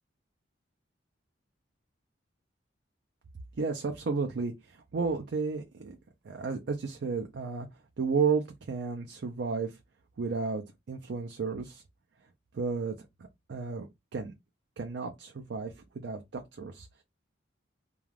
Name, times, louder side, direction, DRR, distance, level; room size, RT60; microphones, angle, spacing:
voice 1, 3.6-6.0 6.2-7.7 8.0-9.8 10.2-11.8 12.5-13.0 13.5-13.9 14.1-14.3 14.8-17.0, right 5 dB, 60° right, 0.4 m, -32 dB
2.4 x 2.3 x 3.2 m
head